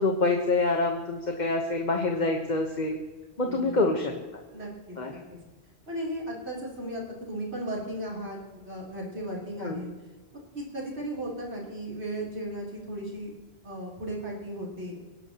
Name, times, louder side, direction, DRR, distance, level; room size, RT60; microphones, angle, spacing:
voice 1, 0.0-3.0 3.4-4.1 5.0-5.1 9.6-9.8, left 3 dB, 45° left, 2 dB, 1.3 m, -26 dB
voice 2, 3.4-4.2 4.5-5.4 5.9-9.9 10.5-13.3 13.6-15.0, right 1 dB, 80° right, -4 dB, 3.8 m, -36 dB
23.5 x 11.5 x 3.0 m, 1.3 s
omnidirectional pair, 1.1 m